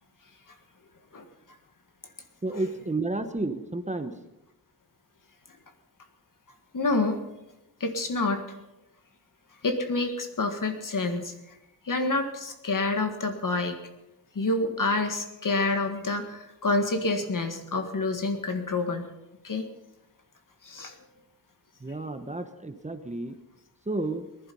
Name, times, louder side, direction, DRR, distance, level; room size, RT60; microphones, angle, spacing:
voice 1, 2.4-4.1 21.8-23.4 23.9-24.3, right 2 dB, 20° right, 8 dB, 0.9 m, -31 dB
voice 2, 6.7-7.3 7.8-8.4 9.6-11.6 11.8-13.8 14.3-19.0 19.4-19.7 20.6-20.9, left 3 dB, 60° left, 6 dB, 1.8 m, -28 dB
20.0 x 11.5 x 5.5 m, 0.95 s
wide cardioid pair, 125°, 37 cm